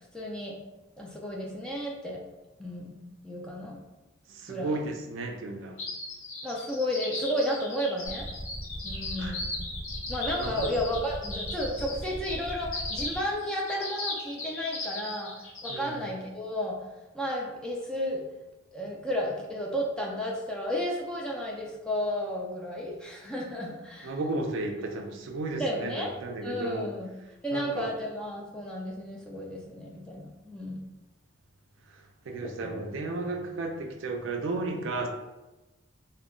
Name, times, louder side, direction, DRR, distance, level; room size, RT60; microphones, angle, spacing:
voice 1, 0.1-0.6 1.0-2.2 2.6-3.0 3.2-3.8 4.5-4.8 6.4-8.3 8.8-9.5 10.1-15.3 15.6-16.8 17.1-18.2 18.7-24.1 25.6-26.1 26.4-27.1 27.4-30.8 32.4-32.9, equal, 5° left, -3 dB, 0.3 m, -33 dB
voice 2, 4.3-5.8 9.2-9.4 10.4-10.7 15.7-16.0 24.0-26.9 27.5-27.9 31.9-35.1, right 2 dB, 65° right, 3 dB, 0.4 m, -34 dB
sound 1, 5.8-15.9, left 2 dB, 80° left, 0.9 m, -37 dB
sound 2, 8.0-13.2, right 1 dB, 45° left, 0.8 m, -39 dB
2.2 x 2.0 x 3.6 m, 1.0 s
head